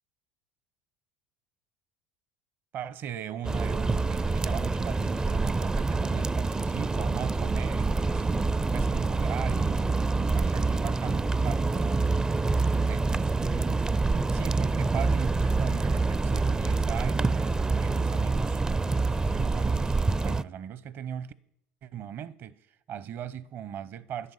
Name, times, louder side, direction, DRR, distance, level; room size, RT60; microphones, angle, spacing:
voice 1, 2.7-8.3 8.7-12.1 12.6-13.9 14.3-18.6 18.9-20.0 20.2-21.3 21.8-24.3, right 9 dB, 55° right, 0.9 m, -39 dB
sound 1, 3.4-20.4, right 3 dB, 15° right, 0.4 m, -26 dB
10.5 x 9.9 x 8.3 m
hypercardioid pair, 85°, 5 cm